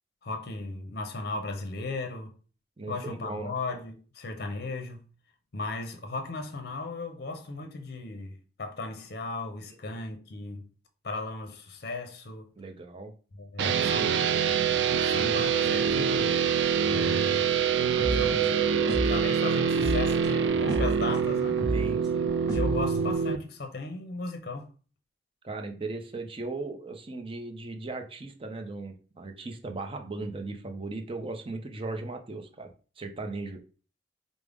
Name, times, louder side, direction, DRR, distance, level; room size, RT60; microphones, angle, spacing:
voice 1, 0.2-2.3 2.9-5.0 5.5-10.6 11.0-12.5 13.3-14.2 15.0-16.4 16.9-17.5 18.2-18.6 18.9-21.6 22.5-24.7, left 3 dB, 60° left, 0.6 m, -36 dB
voice 2, 2.8-3.5 12.6-13.1 21.7-22.3 25.4-32.7 33.0-33.6, right 3 dB, 30° right, 0.5 m, -37 dB
sound 1, 13.6-23.4, right 7 dB, 80° right, 0.4 m, -25 dB
sound 2, 18.0-19.2 19.8-21.0 21.6-23.1, right 2 dB, 20° left, 1.1 m, -32 dB
4.9 x 2.0 x 3.4 m
head